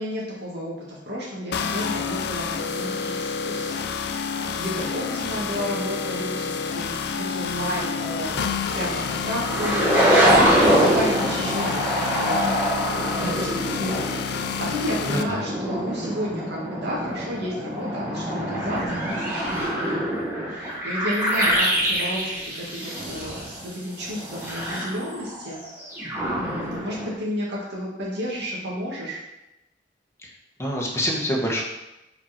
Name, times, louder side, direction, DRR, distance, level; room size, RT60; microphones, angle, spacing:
voice 1, 0.0-6.9 7.1-10.2 10.7-20.2 20.5-25.6 26.4-29.2, equal, 65° right, -5 dB, 2.0 m, -32 dB
sound 1, 1.5-15.2, left 6 dB, 65° left, 0.4 m, -29 dB
sound 2, 7.6-8.0 8.5-8.6 9.2-23.6 24.0-27.1, equal, 15° right, 2.0 m, -24 dB
voice 2, 15.1-15.4 30.2-30.3 30.6-31.6, equal, 15° left, -3 dB, 1.2 m, -26 dB
5.1 x 4.4 x 4.4 m, 0.95 s
head